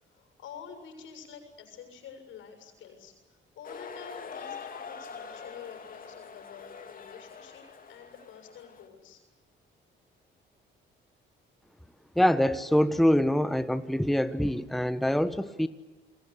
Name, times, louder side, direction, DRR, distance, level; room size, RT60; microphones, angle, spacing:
voice 1, 0.1-9.2, left 7 dB, 85° left, 6 dB, 7.2 m, -48 dB
sound 1, 3.6-8.9, left 6 dB, 45° left, 2.9 m, -44 dB
voice 2, 12.2-15.7, equal, ahead, 11 dB, 1.2 m, -25 dB
29.5 x 21.5 x 8.5 m, 1.2 s
cardioid pair, 90°, 20 cm